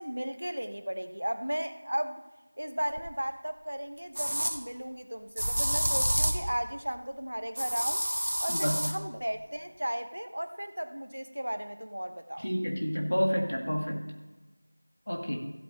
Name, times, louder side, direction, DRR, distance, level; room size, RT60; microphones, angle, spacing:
voice 1, 0.0-2.2 2.6-8.0 8.4-12.5, equal, 50° right, 9 dB, 0.8 m, -35 dB
sound 1, 3.0-3.1 4.1-4.6 5.4-6.5 7.6-9.0, equal, 70° right, 1.4 m, -28 dB
voice 2, 8.5-8.8 12.4-14.0 15.1-15.4, equal, 45° left, 1 dB, 1.9 m, -29 dB
15.5 x 8.1 x 3.2 m, 1.2 s
figure-of-eight pair, 180°, 0 cm